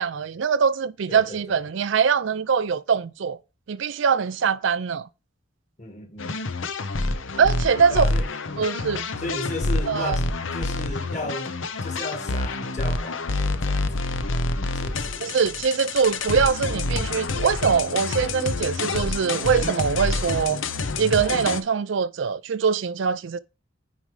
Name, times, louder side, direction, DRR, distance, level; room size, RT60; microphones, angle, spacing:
voice 1, 0.0-3.4 3.7-5.1 7.4-8.1 8.6-9.1 9.9-10.2 15.2-20.6 21.0-23.4, right 6 dB, 65° right, 0.4 m, -23 dB
voice 2, 1.1-1.6 5.8-6.4 7.9-8.3 9.2-11.5 11.8-14.2 14.7-15.3, left 2 dB, 35° left, 1.7 m, -35 dB
sound 1, 6.2-21.6, left 3 dB, 75° left, 0.8 m, -27 dB
9.2 x 4.8 x 3.2 m
head